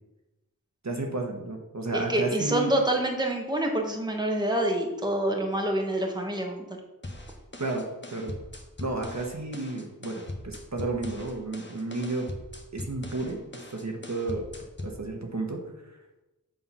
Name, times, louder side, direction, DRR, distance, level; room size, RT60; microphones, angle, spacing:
voice 1, 0.8-2.7 7.6-7.8 8.1-8.3 8.8-12.3 12.7-14.5 14.8-15.6, right 2 dB, 55° right, 1 dB, 1.2 m, -32 dB
voice 2, 1.9-6.8, right 1 dB, 10° right, 1 dB, 1.1 m, -27 dB
sound 1, 7.0-15.0, left 1 dB, 35° left, 1.1 m, -41 dB
7.2 x 3.7 x 5.5 m, 1.0 s
wide cardioid pair, 45°, 34 cm